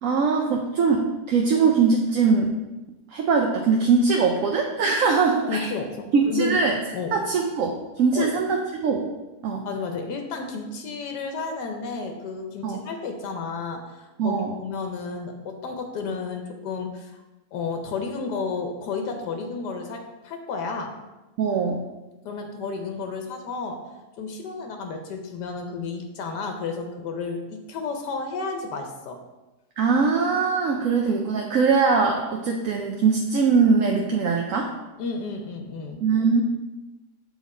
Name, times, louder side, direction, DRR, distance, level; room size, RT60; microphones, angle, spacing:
voice 1, 0.0-2.5 3.1-5.7 6.1-6.8 7.1-9.0 9.4-9.7 12.6-12.8 14.2-14.6 21.4-21.8 29.8-34.7 36.0-36.4, right 5 dB, 65° right, 1 dB, 0.9 m, -21 dB
voice 2, 5.5-6.6 6.9-7.2 8.1-8.4 9.6-17.2 17.5-21.0 22.2-29.2 35.0-36.0, left 4 dB, 90° left, 4 dB, 1.3 m, -32 dB
7.3 x 4.1 x 4.1 m, 1.1 s
omnidirectional pair, 1.7 m